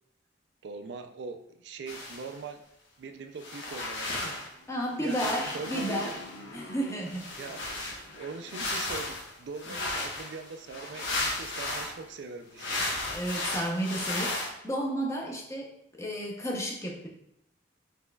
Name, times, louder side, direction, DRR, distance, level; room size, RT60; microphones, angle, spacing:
voice 1, 0.6-2.6 3.0-4.5 5.0-6.1 7.4-7.6 8.2-12.9, right 4 dB, 60° right, 7 dB, 0.3 m, -41 dB
sound 1, 1.9-2.4 3.4-4.5 5.0-6.4 7.0-11.9 12.6-14.5, left 2 dB, 80° left, 1.0 m, -34 dB
Motorcycle, 4.5-9.1, left 1 dB, 65° left, 0.7 m, -49 dB
voice 2, 4.7-6.1 6.5-7.2 13.1-14.4 14.6-17.1, right 1 dB, 15° left, -1 dB, 0.6 m, -32 dB
4.2 x 4.1 x 2.2 m, 0.80 s
head